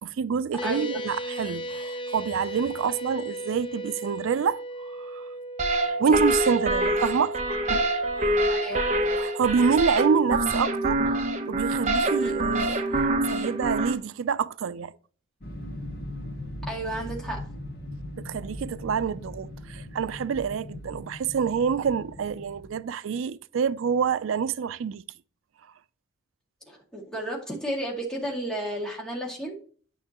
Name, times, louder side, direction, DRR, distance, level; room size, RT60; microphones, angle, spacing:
voice 1, 0.0-5.3 6.0-7.8 8.2-8.6 9.1-11.2 11.5-14.9 18.2-25.0, right 6 dB, 85° right, 0.4 m, -27 dB
sound 1, 0.6-9.3, right 1 dB, 25° left, 0.5 m, -37 dB
sound 2, 5.6-13.9, right 1 dB, 35° right, 0.9 m, -25 dB
voice 2, 8.5-8.9 12.2-12.3 16.7-17.5 26.7-29.6, right 1 dB, 5° left, 2.0 m, -33 dB
sound 3, 15.4-22.8, left 1 dB, 50° left, 1.5 m, -39 dB
9.1 x 6.1 x 2.9 m
head